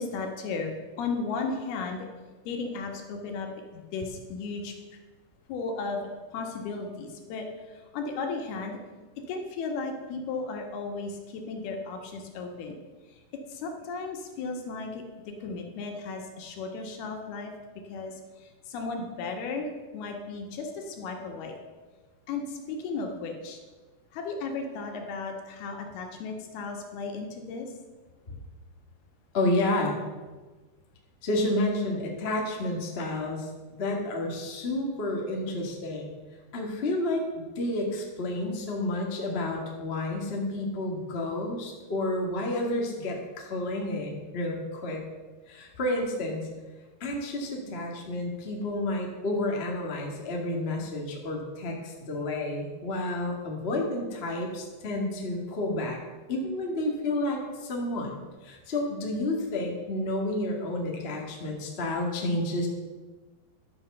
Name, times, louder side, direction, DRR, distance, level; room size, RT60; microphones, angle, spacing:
voice 1, 0.0-2.1 2.4-4.7 5.5-8.8 9.3-12.8 13.5-17.5 17.9-21.5 22.3-23.6 24.1-27.7, left 4 dB, 75° left, 2 dB, 3.3 m, -35 dB
voice 2, 29.3-30.0 31.2-36.1 36.5-37.2 37.5-45.0 45.5-46.5 47.0-56.0 56.3-62.7, left 1 dB, 45° left, 0 dB, 0.8 m, -30 dB
12.0 x 7.2 x 6.7 m, 1.3 s
omnidirectional pair, 4.6 m